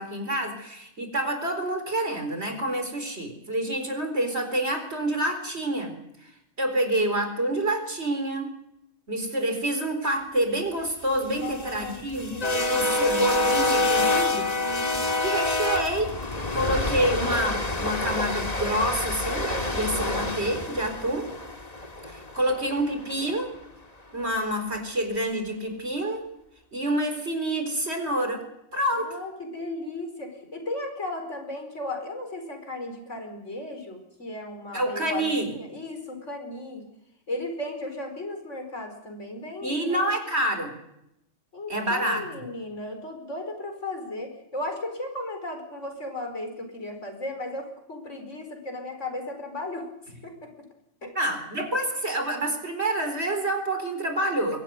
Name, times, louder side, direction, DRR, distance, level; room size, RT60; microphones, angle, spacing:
voice 1, 0.0-5.9 6.2-6.3 6.6-8.5 9.1-12.4 12.7-14.5 15.2-16.1 16.5-21.3 22.1-23.5 24.1-26.2 26.7-28.4 28.7-29.2 34.7-35.5 39.6-40.7 41.7-42.2 51.1-54.6, right 1 dB, 55° right, 6 dB, 4.5 m, -27 dB
sound 1, 11.1-23.3, left 2 dB, 30° left, 2.1 m, -27 dB
voice 2, 11.2-12.0 12.3-13.0 14.6-15.2 29.0-36.9 37.3-40.1 41.5-49.9 50.2-50.5 51.0-51.1, left 2 dB, 70° left, 5 dB, 5.0 m, -35 dB
23.0 x 17.0 x 9.5 m, 0.80 s
omnidirectional pair, 1.3 m